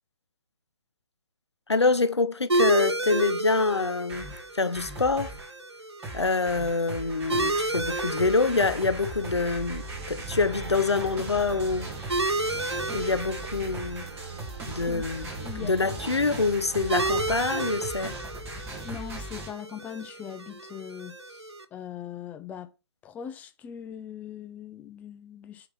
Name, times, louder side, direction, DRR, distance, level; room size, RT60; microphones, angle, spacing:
voice 1, 1.7-5.4 6.1-11.9 12.9-14.1 14.7-18.2, left 3 dB, 85° left, 1.0 m, -26 dB
sound 1, 2.5-21.6, right 2 dB, 85° right, 1.4 m, -33 dB
sound 2, 3.8-5.5 6.0-19.5, right 1 dB, 20° right, 2.5 m, -39 dB
sound 3, 8.8-17.5, right 8 dB, 40° right, 4.6 m, -43 dB
voice 2, 15.4-15.7 18.8-22.7 23.0-25.7, left 9 dB, 10° left, 0.6 m, -40 dB
8.4 x 4.0 x 5.5 m
figure-of-eight pair, 135°, 14 cm